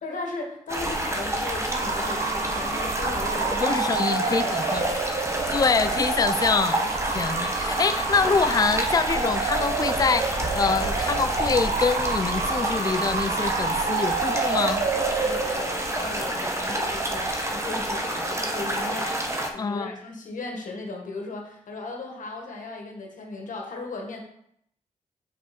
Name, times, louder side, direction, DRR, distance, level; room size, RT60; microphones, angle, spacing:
voice 1, 0.0-5.0 7.7-7.8 15.2-19.2 19.5-24.2, left 3 dB, 75° left, 1 dB, 1.8 m, -37 dB
sound 1, 0.7-19.5, right 1 dB, 20° right, 1.2 m, -28 dB
Bark / Motor vehicle (road) / Siren, 1.7-18.0, right 5 dB, 65° right, 0.7 m, -30 dB
voice 2, 3.6-4.8 5.5-14.8 19.6-19.9, left 5 dB, 30° left, 12 dB, 0.4 m, -25 dB
6.5 x 5.0 x 4.4 m, 0.71 s
cardioid pair, 60°, 13 cm